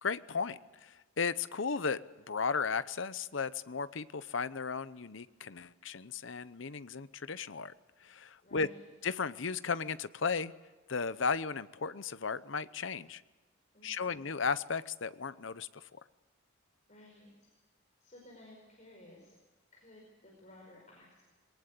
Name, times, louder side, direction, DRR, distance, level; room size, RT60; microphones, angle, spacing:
voice 1, 0.0-2.0 2.3-7.7 8.0-8.7 9.0-10.5 10.9-13.2 13.8-16.0, left 5 dB, 65° left, 15 dB, 0.8 m, -35 dB
voice 2, 8.4-8.9 13.7-14.3 16.9-17.5 18.0-19.3 19.7-21.2, left 1 dB, 35° left, -1 dB, 5.1 m, -56 dB
22.0 x 19.0 x 8.4 m, 1.3 s
head